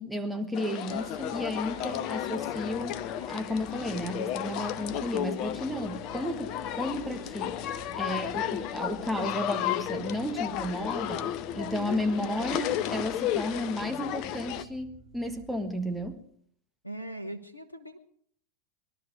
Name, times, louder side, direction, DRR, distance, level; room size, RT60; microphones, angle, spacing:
voice 1, 0.0-7.6 7.9-16.2, left 1 dB, ahead, 1.6 m, -33 dB
sound 1, 0.5-14.6, left 12 dB, 40° left, 0.7 m, -33 dB
sound 2, 0.9-16.1, right 4 dB, 65° right, 1.8 m, -50 dB
voice 2, 16.8-18.0, right 1 dB, 85° left, 0.9 m, -40 dB
21.0 x 12.0 x 4.8 m
figure-of-eight pair, 90°, 0 cm